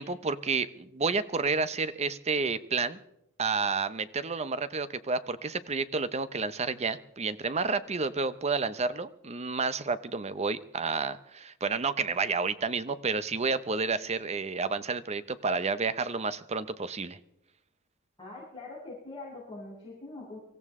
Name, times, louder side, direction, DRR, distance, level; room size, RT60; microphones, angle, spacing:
voice 1, 0.0-3.0 3.4-17.2, right 4 dB, 30° right, 14 dB, 0.7 m, -30 dB
voice 2, 18.2-20.4, left 2 dB, 20° left, -10 dB, 6.6 m, -43 dB
24.5 x 15.0 x 3.7 m, 0.85 s
head